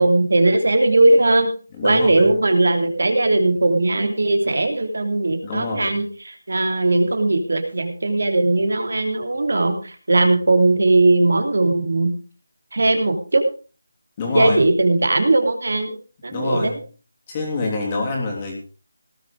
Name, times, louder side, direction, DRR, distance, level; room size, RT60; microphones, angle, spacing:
voice 1, 0.0-1.5 1.8-12.1 12.7-13.4 14.3-16.0 16.2-16.8, right 2 dB, 60° right, 6 dB, 3.2 m, -18 dB
voice 2, 1.8-2.3 5.4-5.9 14.2-14.6 16.3-16.8 17.3-18.5, left 3 dB, 15° left, -1 dB, 3.1 m, -26 dB
18.0 x 8.4 x 5.1 m, 0.37 s
figure-of-eight pair, 180°, 0 cm